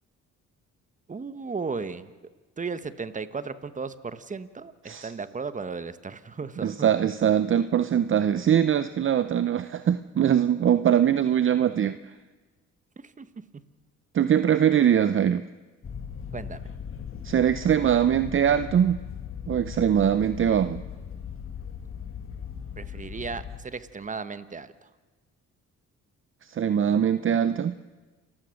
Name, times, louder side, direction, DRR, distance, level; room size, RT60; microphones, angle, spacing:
voice 1, 1.1-2.1 2.6-6.8 13.0-13.3 16.3-16.7 22.8-24.9, right 4 dB, 25° right, 12 dB, 1.2 m, -35 dB
voice 2, 6.6-12.0 14.1-15.5 17.2-19.0 19.5-20.8 26.5-27.7, right 9 dB, 45° right, 13 dB, 0.7 m, -22 dB
sound 1, 15.8-23.6, left 7 dB, 45° left, 2.2 m, -38 dB
28.5 x 15.0 x 6.5 m, 1.3 s
cardioid pair, 90°, 30 cm